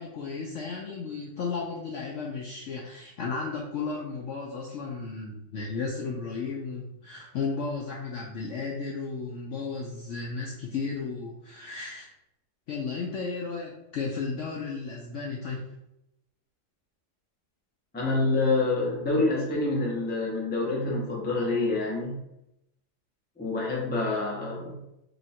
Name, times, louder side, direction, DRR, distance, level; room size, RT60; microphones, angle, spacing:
voice 1, 0.0-12.1 12.7-15.7, left 4 dB, 70° left, -2 dB, 0.7 m, -34 dB
voice 2, 17.9-22.2 23.4-24.8, left 2 dB, 15° left, -4 dB, 0.3 m, -27 dB
2.9 x 2.4 x 4.2 m, 0.85 s
omnidirectional pair, 1.7 m